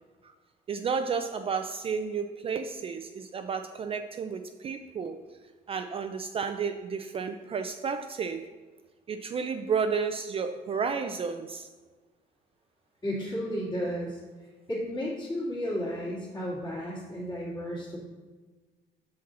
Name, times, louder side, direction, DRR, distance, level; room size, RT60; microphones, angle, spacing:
voice 1, 0.7-5.2 5.7-8.4 9.1-11.7, right 5 dB, 35° right, 7 dB, 0.4 m, -32 dB
voice 2, 13.0-14.2 14.7-18.0, equal, 25° left, -7 dB, 2.2 m, -33 dB
7.0 x 5.1 x 4.1 m, 1.3 s
cardioid pair, 110°, 17 cm